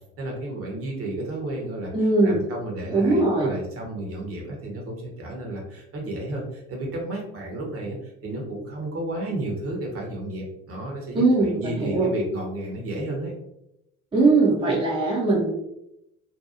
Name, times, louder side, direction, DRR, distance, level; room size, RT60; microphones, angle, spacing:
voice 1, 0.2-1.9 2.2-13.3, right 1 dB, 35° right, 0 dB, 0.9 m, -32 dB
voice 2, 1.9-2.4 2.9-3.5 11.1-12.1 14.1-15.5, right 3 dB, 15° right, -4 dB, 0.7 m, -20 dB
2.8 x 2.3 x 2.4 m, 0.82 s
figure-of-eight pair, 60°, 38 cm